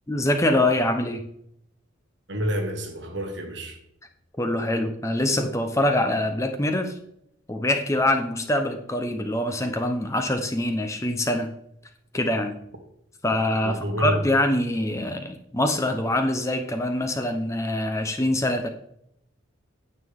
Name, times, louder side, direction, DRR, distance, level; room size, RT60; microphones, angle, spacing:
voice 1, 0.1-1.2 4.4-6.9 7.5-11.5 12.1-12.6 13.2-18.7, left 1 dB, 15° left, 0.7 m, -24 dB
voice 2, 2.3-3.8 13.6-14.2, equal, 60° right, 1.7 m, -28 dB
9.6 x 8.3 x 3.6 m
head